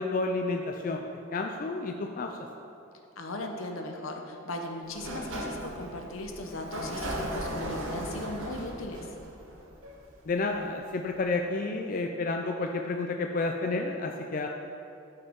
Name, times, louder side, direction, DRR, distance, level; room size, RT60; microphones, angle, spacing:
voice 1, 0.0-2.4 10.3-14.5, left 3 dB, 40° left, 3 dB, 0.4 m, -30 dB
voice 2, 3.2-9.1, left 1 dB, 75° left, 3 dB, 0.9 m, -38 dB
Sliding door, 4.8-10.5, right 1 dB, 70° right, 1.1 m, -37 dB
12.5 x 5.5 x 3.6 m, 2.7 s
head